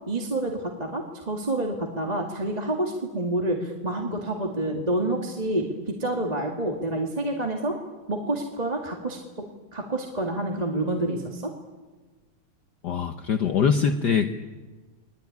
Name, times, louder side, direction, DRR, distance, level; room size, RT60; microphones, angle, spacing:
voice 1, 0.1-7.8 8.1-9.4 9.7-11.5, right 1 dB, 20° right, 1 dB, 2.2 m, -28 dB
voice 2, 12.8-14.3, left 6 dB, 55° left, 7 dB, 1.5 m, -23 dB
29.0 x 21.5 x 9.5 m, 1.3 s
omnidirectional pair, 2.4 m